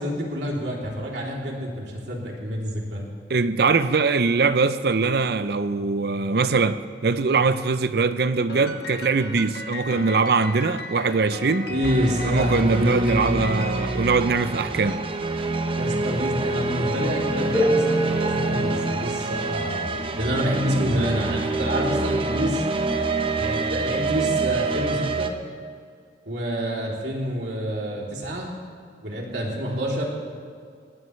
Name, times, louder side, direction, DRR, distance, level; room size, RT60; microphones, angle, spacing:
voice 1, 0.0-3.1 11.7-13.3 15.8-22.6 23.4-25.3 26.3-28.5 29.0-30.0, equal, 80° right, 3.3 m, -27 dB
voice 2, 3.3-11.7 12.3-15.0, right 4 dB, 60° right, 0.6 m, -22 dB
Piano, 8.5-15.0, left 2 dB, 70° left, 1.4 m, -37 dB
sound 1, 11.8-25.3, right 3 dB, 30° right, 0.8 m, -26 dB
sound 2, 17.5-23.0 24.0-24.1 25.0-25.2, right 1 dB, 10° right, 5.1 m, -29 dB
20.5 x 17.5 x 3.2 m
head